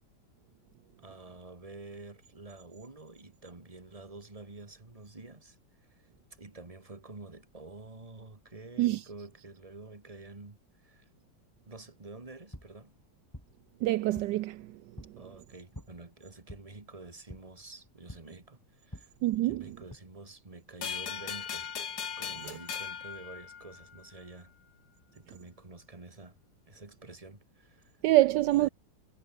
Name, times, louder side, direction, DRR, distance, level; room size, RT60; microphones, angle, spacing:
voice 1, 1.0-11.1 11.7-13.0 15.2-19.1 19.4-21.7 22.2-24.5 25.1-26.4 26.7-28.0 28.5-28.7, right 3 dB, 20° right, 2.3 m, -49 dB
sound 1, 12.2-20.0, equal, 10° left, 6.2 m, -51 dB
voice 2, 13.8-14.7 19.2-19.7 28.0-28.7, right 16 dB, 75° right, 1.2 m, -25 dB
sound 2, 20.8-24.1, left 7 dB, 60° left, 2.1 m, -38 dB
omnidirectional pair, 1.9 m